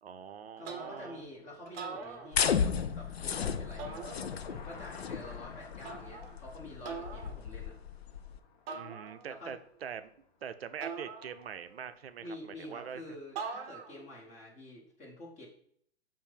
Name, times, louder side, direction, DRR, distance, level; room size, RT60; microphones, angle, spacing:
voice 1, 0.0-1.2 8.7-10.1 10.4-12.3 12.6-13.0, right 8 dB, 70° right, 10 dB, 0.6 m, -43 dB
voice 2, 0.6-7.8 9.3-9.6 12.2-15.5, left 1 dB, 20° left, -2 dB, 1.8 m, -48 dB
sound 1, 0.6-1.3 1.7-2.8 3.8-4.7 5.8-6.4 6.8-7.4 8.7-9.5 10.8-11.8 13.4-14.1, right 5 dB, 30° right, 0.9 m, -43 dB
Car passing by, 1.0-13.3, left 5 dB, 50° left, 1.1 m, -56 dB
sound 2, 2.3-8.4, left 7 dB, 70° left, 0.6 m, -34 dB
7.0 x 2.7 x 5.3 m, 0.64 s
figure-of-eight pair, 110°, 32 cm